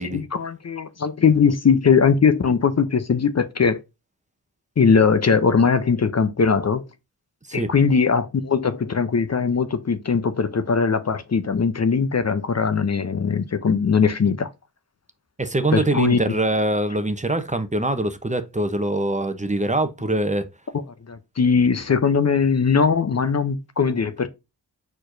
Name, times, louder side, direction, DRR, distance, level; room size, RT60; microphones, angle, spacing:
voice 1, 0.0-3.8 4.8-6.8 7.5-14.5 15.7-16.2 21.1-24.3, left 5 dB, 40° left, 0.7 m, -20 dB
voice 2, 15.4-20.5, right 1 dB, 20° right, 0.8 m, -23 dB
4.5 x 4.5 x 2.6 m
cardioid pair, 40°, 39 cm